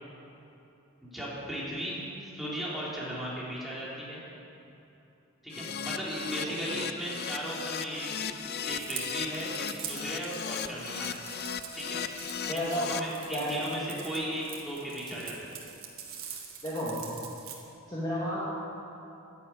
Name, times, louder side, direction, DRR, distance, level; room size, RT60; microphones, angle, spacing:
voice 1, 1.0-4.2 5.4-8.3 8.6-11.2 11.7-12.1 12.5-15.5, equal, ahead, -7 dB, 3.5 m, -36 dB
Keyboard (musical), 5.5-13.0, left 7 dB, 50° left, 0.6 m, -36 dB
sound 1, 8.7-17.6, right 8 dB, 90° right, 1.9 m, -44 dB
voice 2, 12.5-12.9 13.3-13.6 16.6-17.0 17.9-18.5, equal, 20° left, -9 dB, 2.5 m, -31 dB
12.0 x 10.5 x 8.9 m, 2.9 s
head